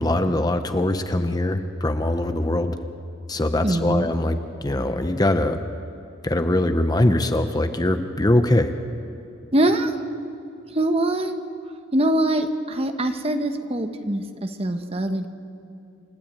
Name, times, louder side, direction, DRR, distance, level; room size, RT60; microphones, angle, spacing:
voice 1, 0.0-2.8 3.3-5.6 6.2-8.7, left 1 dB, 20° left, 8 dB, 0.8 m, -22 dB
voice 2, 3.6-4.1 9.5-10.0 10.7-11.4 11.9-15.3, right 1 dB, 30° right, 7 dB, 1.1 m, -23 dB
28.5 x 13.0 x 8.8 m, 2.7 s
head